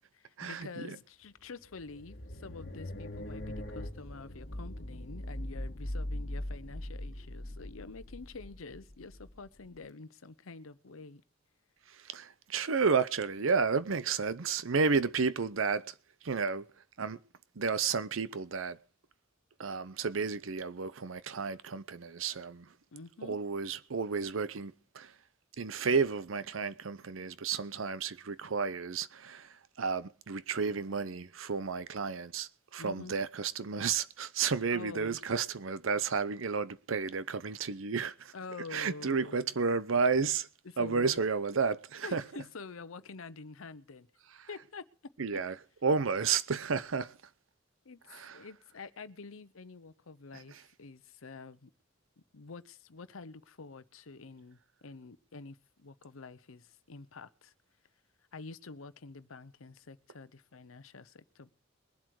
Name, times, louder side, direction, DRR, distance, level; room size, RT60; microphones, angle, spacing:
voice 1, 0.2-11.2 22.9-23.4 32.8-33.1 34.7-35.2 38.3-39.5 40.6-41.2 42.0-44.1 44.5-44.9 45.3-45.4 47.8-51.7 52.3-57.5 58.3-61.5, left 4 dB, 90° left, 0.8 m, -47 dB
sound 1, 1.4-9.8, left 1 dB, 50° left, 1.5 m, -41 dB
voice 2, 12.0-15.9 16.2-16.7 17.0-17.2 17.6-18.8 19.6-22.7 23.2-25.1 25.6-38.3 38.7-40.5 40.8-42.4 44.4-44.5 45.2-45.5 45.8-47.2 48.1-48.4, right 5 dB, 80° right, 0.7 m, -32 dB
22.0 x 7.8 x 4.8 m
head